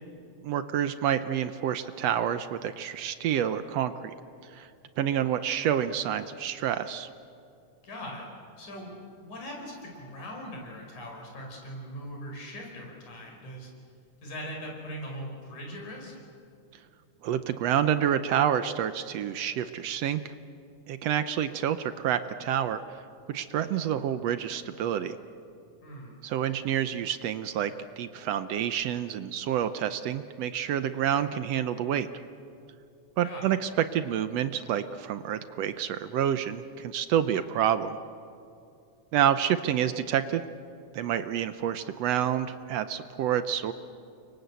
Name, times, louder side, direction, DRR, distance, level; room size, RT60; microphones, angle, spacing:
voice 1, 0.4-3.9 4.5-4.7 5.0-7.1 17.2-20.2 20.9-23.0 23.3-25.2 26.2-32.1 33.2-38.0 39.1-40.4 40.9-43.7, right 10 dB, 70° right, 11 dB, 1.6 m, -28 dB
voice 2, 7.8-8.3 8.6-8.9 9.2-13.7 14.2-16.1 25.8-26.1 33.2-33.5, equal, 75° left, 0 dB, 6.4 m, -40 dB
30.0 x 24.0 x 8.2 m, 2.6 s
omnidirectional pair, 3.5 m